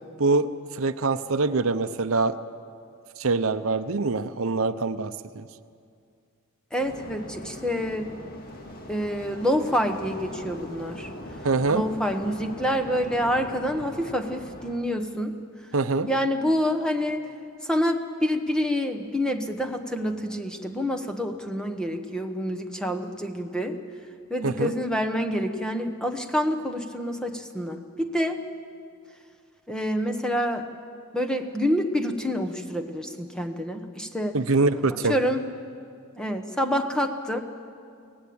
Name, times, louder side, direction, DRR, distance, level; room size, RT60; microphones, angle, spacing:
voice 1, 0.7-2.4 3.2-5.4 11.4-11.8 15.7-16.1 24.4-24.7 34.3-35.1, right 3 dB, 65° right, 11 dB, 0.7 m, -24 dB
voice 2, 6.7-8.1 8.9-11.1 11.7-15.3 16.1-17.2 17.6-23.8 24.3-28.4 29.7-30.7 31.1-34.3 34.9-35.4 36.2-37.4, equal, 5° left, 5 dB, 1.1 m, -27 dB
sound 1, 6.8-14.8, left 1 dB, 40° left, 2.1 m, -41 dB
23.5 x 17.5 x 8.7 m, 2.3 s
head